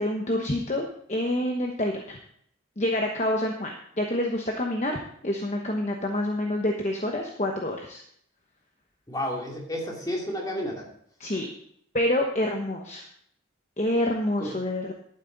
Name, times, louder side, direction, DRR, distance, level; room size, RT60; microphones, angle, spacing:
voice 1, 0.0-2.2 2.8-8.0 11.2-11.5 11.9-13.0 13.8-14.9, left 1 dB, 35° left, 2 dB, 1.1 m, -27 dB
voice 2, 9.1-10.9 11.3-11.4 14.4-14.5, equal, 20° left, -1 dB, 2.7 m, -31 dB
11.5 x 9.6 x 4.0 m, 0.66 s
head